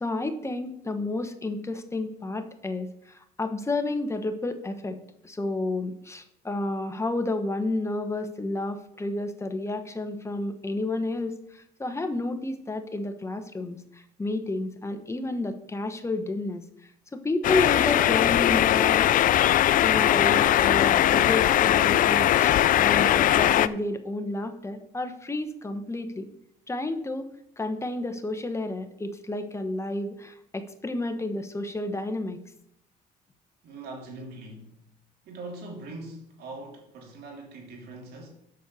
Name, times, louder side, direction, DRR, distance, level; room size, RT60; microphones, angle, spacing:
voice 1, 0.0-5.0 5.2-16.6 17.1-19.0 19.8-26.3 26.7-27.3 27.6-32.4, left 2 dB, 15° left, 1.1 m, -31 dB
sound 1, 17.4-23.7, left 12 dB, 55° left, 0.4 m, -20 dB
voice 2, 33.6-34.8 35.2-38.3, right 2 dB, 70° right, 3.1 m, -41 dB
7.7 x 6.4 x 6.9 m
cardioid pair, 110°, 17 cm